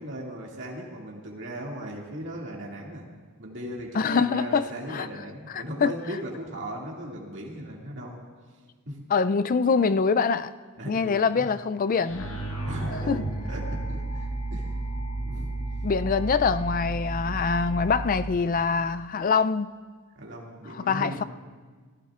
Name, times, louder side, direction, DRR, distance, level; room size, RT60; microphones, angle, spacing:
voice 1, 0.0-3.0 3.4-8.2 8.9-9.0 10.8-11.6 12.6-14.7 15.2-15.5 20.2-21.2, equal, 55° right, 2.2 m, -38 dB
voice 2, 3.9-5.1 5.5-5.9 9.1-10.5 10.9-12.3 13.1-13.2 15.8-19.7 20.7-21.2, left 5 dB, 40° left, 0.3 m, -24 dB
sound 1, 12.0-18.3, right 2 dB, 65° left, 1.9 m, -32 dB
26.5 x 16.5 x 2.4 m
head